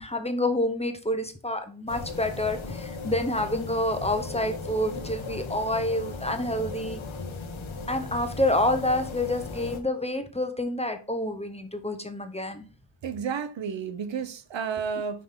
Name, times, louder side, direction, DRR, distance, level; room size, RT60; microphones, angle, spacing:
voice 1, 0.0-7.0 7.9-12.6, left 1 dB, 15° left, 1.0 m, -28 dB
sound 1, 1.9-9.8, left 3 dB, 75° left, 1.4 m, -37 dB
voice 2, 13.0-15.2, right 6 dB, 70° right, 0.9 m, -31 dB
5.9 x 5.0 x 3.8 m
cardioid pair, 55°, 47 cm